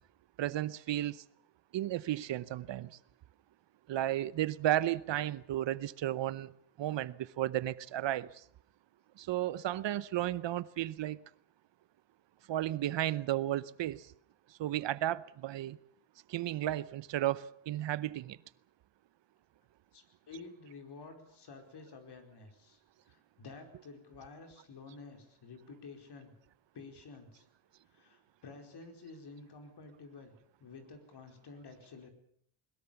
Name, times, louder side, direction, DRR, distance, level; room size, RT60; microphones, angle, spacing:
voice 1, 0.4-1.2 1.7-2.9 3.9-6.5 6.8-8.4 9.2-11.2 12.5-14.1 14.6-15.8 16.3-18.4, right 13 dB, 60° right, 0.8 m, -33 dB
voice 2, 19.9-26.3 26.7-27.5 27.9-32.1, left 4 dB, 50° left, 4.8 m, -51 dB
21.5 x 21.5 x 7.1 m
cardioid pair, 140°, 49 cm